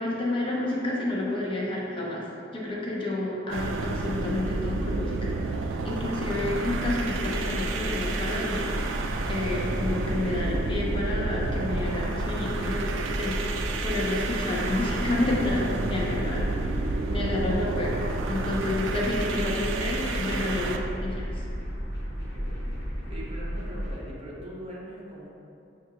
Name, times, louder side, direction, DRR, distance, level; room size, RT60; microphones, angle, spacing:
voice 1, 0.0-2.3 2.5-5.4 5.8-8.7 9.2-13.4 13.8-18.0 18.3-20.8 21.0-21.4, left 2 dB, 30° left, -4 dB, 0.5 m, -30 dB
sound 1, 3.5-20.9, right 3 dB, 80° right, 0.3 m, -31 dB
sound 2, 6.2-24.0, equal, 55° left, 1.0 m, -33 dB
voice 2, 20.1-20.8 22.3-22.7 23.1-25.3, equal, 35° right, -5 dB, 0.7 m, -41 dB
5.6 x 2.4 x 2.8 m, 2.6 s
head